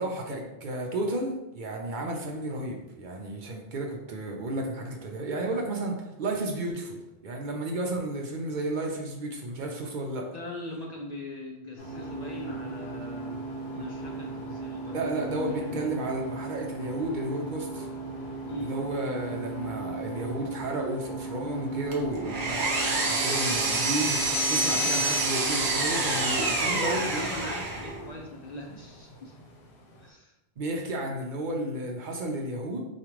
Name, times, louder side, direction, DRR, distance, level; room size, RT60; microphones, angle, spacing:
voice 1, 0.0-7.0 7.2-10.3 14.9-17.9 18.6-24.2 24.5-27.2 30.6-32.9, right 1 dB, 60° right, 1 dB, 0.6 m, -32 dB
voice 2, 10.3-15.8 18.5-18.7 26.6-29.3 30.0-30.3, left 1 dB, 55° left, -1 dB, 0.5 m, -40 dB
sound 1, 11.8-30.1, right 3 dB, 85° left, 1.0 m, -38 dB
Power tool, 21.9-28.0, right 2 dB, 90° right, 1.0 m, -27 dB
4.7 x 2.5 x 3.0 m, 0.95 s
omnidirectional pair, 1.1 m